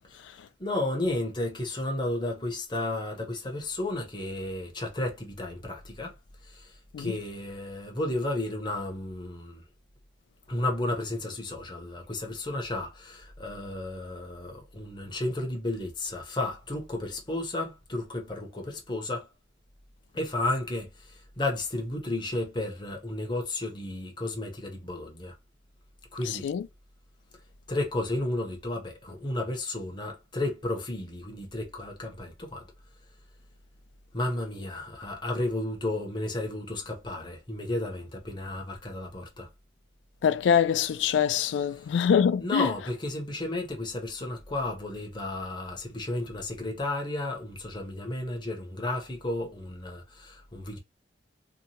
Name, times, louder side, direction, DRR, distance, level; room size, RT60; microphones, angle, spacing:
voice 1, 0.6-6.1 6.4-9.6 10.5-19.3 20.1-25.3 26.1-26.5 27.7-32.7 34.1-39.5 41.7-41.9 42.4-50.8, left 1 dB, 25° left, 0.7 m, -33 dB
voice 2, 40.2-42.7, left 7 dB, 75° left, 0.3 m, -24 dB
2.8 x 2.3 x 2.6 m
head